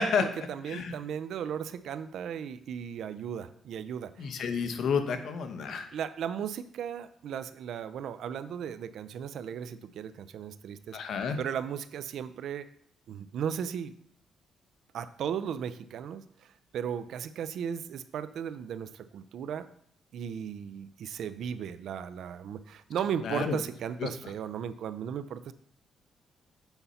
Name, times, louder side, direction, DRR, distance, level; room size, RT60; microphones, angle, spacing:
voice 1, 0.2-4.3 5.9-11.0 11.4-12.7 13.1-13.9 14.9-16.2 16.7-19.7 20.1-25.5, right 8 dB, 75° right, 14 dB, 0.5 m, -36 dB
voice 2, 4.2-5.9 10.9-11.4 23.2-23.6 24.0-24.1, left 5 dB, 65° left, 8 dB, 1.0 m, -30 dB
8.0 x 5.6 x 4.1 m, 0.66 s
cardioid pair, 95°, 0 cm